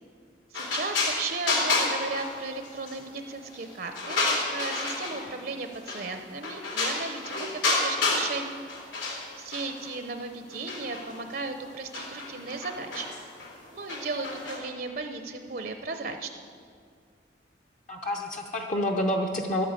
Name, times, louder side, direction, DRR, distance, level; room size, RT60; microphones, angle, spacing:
sound 1, 0.5-3.0 3.3-5.3 5.9-6.1 6.4-8.3 8.6-9.9 10.5-14.6, left 3 dB, 90° left, 3.1 m, -29 dB
voice 1, 0.5-4.2 4.5-8.6 9.4-13.1 13.7-16.3, right 3 dB, 55° right, 6 dB, 0.7 m, -35 dB
voice 2, 17.9-19.6, left 1 dB, 40° left, 1 dB, 0.8 m, -28 dB
11.5 x 9.2 x 8.2 m, 2.1 s
head